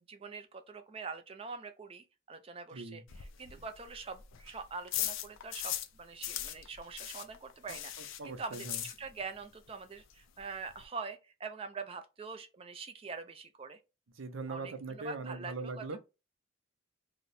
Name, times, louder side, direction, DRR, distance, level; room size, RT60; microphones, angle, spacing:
voice 1, 0.1-13.8 14.5-16.0, right 4 dB, 30° right, 0.4 m, -44 dB
sound 1, 3.1-6.0 6.2-9.4 9.7-9.8 10.1-10.2 10.4-10.9, left 11 dB, 80° left, 0.4 m, -39 dB
voice 2, 7.7-8.8 14.2-16.0, right 3 dB, 85° right, 0.6 m, -41 dB
2.9 x 2.1 x 3.9 m
head